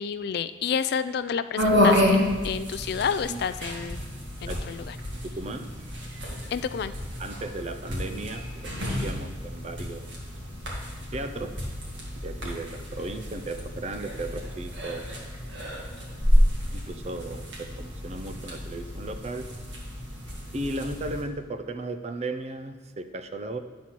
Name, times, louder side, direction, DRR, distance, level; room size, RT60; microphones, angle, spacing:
voice 1, 0.0-4.0 4.4-5.0 6.5-6.9, left 7 dB, 60° left, 13 dB, 0.3 m, -30 dB
sound 1, 1.6-21.2, left 1 dB, 75° right, 1.9 m, -29 dB
voice 2, 5.2-5.7 6.2-6.6 7.2-10.1 11.1-11.5 12.2-15.2 15.9-16.0 16.7-19.5 20.5-23.6, right 2 dB, 35° right, 9 dB, 0.5 m, -36 dB
10.0 x 4.2 x 6.0 m, 1.3 s
head